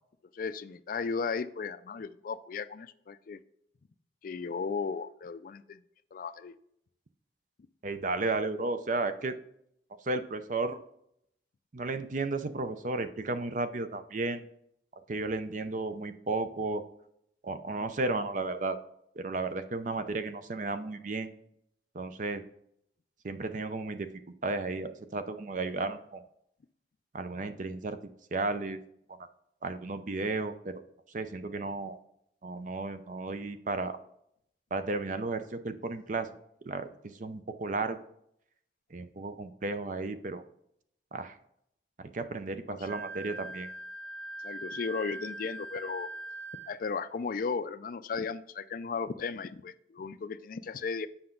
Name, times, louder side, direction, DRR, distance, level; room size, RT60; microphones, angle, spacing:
voice 1, 0.3-3.4 4.2-5.8 6.1-6.5 42.7-42.9 44.4-46.1 46.7-51.1, left 5 dB, 50° left, 14 dB, 0.4 m, -35 dB
voice 2, 7.8-9.4 10.0-10.8 11.7-14.4 15.1-16.8 17.4-18.8 19.2-21.3 21.9-22.4 23.2-24.1 24.4-26.2 27.1-28.0 28.3-28.8 29.6-30.8 31.1-32.0 32.4-34.0 34.7-36.3 36.7-38.0 38.9-40.4 41.1-41.4 42.0-43.7, right 3 dB, 45° right, 10 dB, 0.6 m, -33 dB
Wind instrument woodwind instrument, 42.9-46.7, right 2 dB, 70° right, 1.3 m, -41 dB
7.8 x 5.7 x 3.8 m, 0.73 s
head